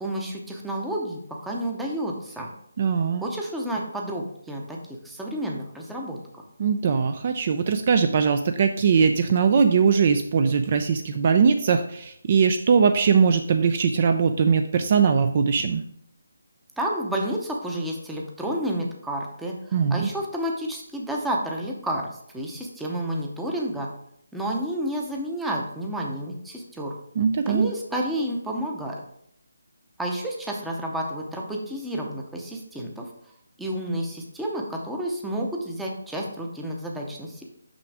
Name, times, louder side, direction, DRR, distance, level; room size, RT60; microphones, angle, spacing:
voice 1, 0.0-2.5 3.2-6.4 16.8-22.1 22.3-23.9 24.3-26.9 27.5-29.0 30.0-33.1 33.6-37.4, right 1 dB, 5° right, -1 dB, 0.7 m, -30 dB
voice 2, 2.8-3.2 6.6-15.8 19.7-20.1 27.2-27.7, right 6 dB, 35° right, 7 dB, 0.3 m, -21 dB
6.1 x 6.0 x 3.4 m, 0.70 s
hypercardioid pair, 165°, 0 cm